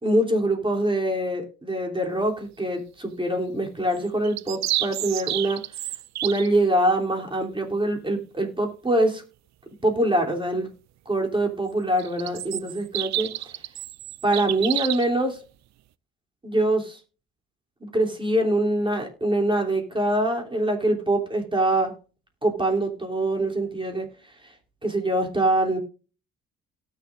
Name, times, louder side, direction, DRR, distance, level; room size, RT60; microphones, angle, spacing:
voice 1, 0.0-5.6 6.2-9.2 9.8-10.7 11.0-13.5 14.2-15.4 16.4-17.0 17.8-21.9 22.4-24.1 24.4-24.5 24.8-25.8, right 1 dB, 15° right, 1 dB, 3.1 m, -24 dB
sound 1, 3.9-6.5 12.0-15.1, right 14 dB, 65° right, 0.5 m, -30 dB
18.0 x 6.8 x 2.6 m, 0.35 s
cardioid pair, 90°, 30 cm